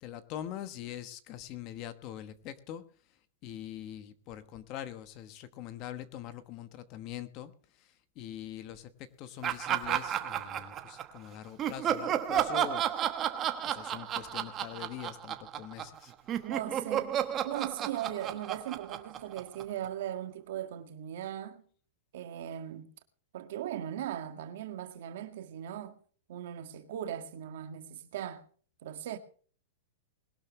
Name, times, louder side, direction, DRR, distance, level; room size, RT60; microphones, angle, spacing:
voice 1, 0.0-2.8 3.4-7.5 8.2-8.9 9.2-12.8 13.7-16.1, left 11 dB, 30° left, 1.1 m, -43 dB
Laughter, 9.4-11.2 11.6-16.0 16.3-19.9, right 10 dB, 20° right, 1.1 m, -32 dB
voice 2, 16.4-17.1 17.4-21.6 22.1-22.9 23.3-26.0 26.3-28.5 28.8-29.2, right 11 dB, 55° right, 1.9 m, -38 dB
21.0 x 12.0 x 3.2 m
supercardioid pair, 165°, 0 cm